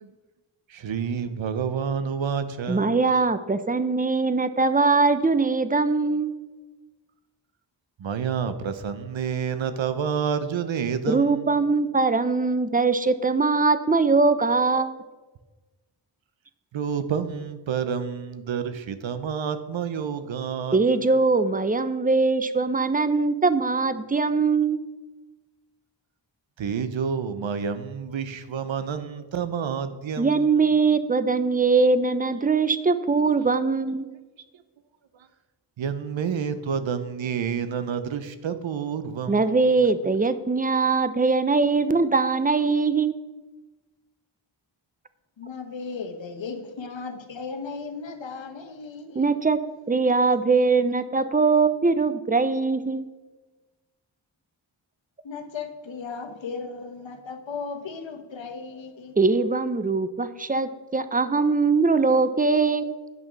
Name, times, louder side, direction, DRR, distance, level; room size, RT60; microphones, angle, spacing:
voice 1, 0.8-3.0 8.0-11.5 16.7-20.8 26.6-30.5 35.8-39.5, right 7 dB, 80° right, 0.9 m, -29 dB
voice 2, 2.7-6.3 11.1-15.0 20.7-24.8 30.2-34.1 39.3-43.1 49.1-49.6 49.9-53.1 59.2-63.0, right 4 dB, 20° right, 0.7 m, -21 dB
voice 3, 45.4-49.3 55.2-59.2, left 5 dB, 80° left, 1.1 m, -36 dB
9.2 x 6.1 x 6.0 m
cardioid pair, 45°, 45 cm